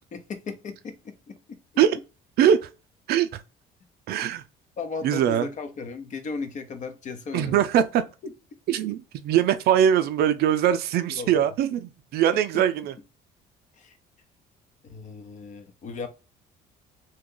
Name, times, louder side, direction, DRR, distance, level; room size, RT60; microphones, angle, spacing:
voice 1, 0.1-1.6 4.1-4.2 4.8-7.6 8.2-8.3 11.1-11.3 12.5-12.6 13.8-14.0 14.8-16.1, left 4 dB, 45° left, 0.7 m, -36 dB
voice 2, 2.4-2.7 3.1-3.4 4.1-4.4 5.0-5.5 7.3-8.0 8.7-12.9, right 9 dB, 70° right, 0.4 m, -22 dB
2.8 x 2.3 x 3.7 m
cardioid pair, 110°, 17 cm